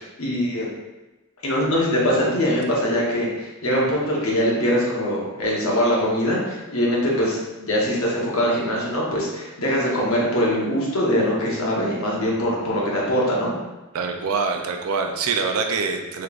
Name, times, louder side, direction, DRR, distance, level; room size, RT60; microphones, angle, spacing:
voice 1, 0.2-0.7 1.4-13.5, equal, 75° left, -4 dB, 1.0 m, -22 dB
voice 2, 13.9-16.2, right 4 dB, 85° right, 4 dB, 0.4 m, -25 dB
3.7 x 3.1 x 2.4 m, 1.1 s
head